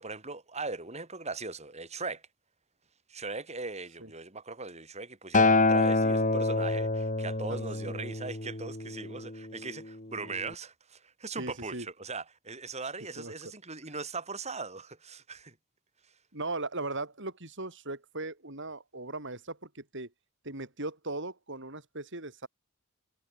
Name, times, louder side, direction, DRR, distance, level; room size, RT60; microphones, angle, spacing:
voice 1, 0.0-2.2 3.1-15.5, right 3 dB, 30° right, 5.9 m, -39 dB
Acoustic guitar, 5.3-9.6 10.5-10.6, left 3 dB, 35° left, 3.7 m, -27 dB
voice 2, 11.4-11.9 13.2-13.3 16.3-20.1 20.4-22.5, right 2 dB, 55° right, 6.7 m, -38 dB
head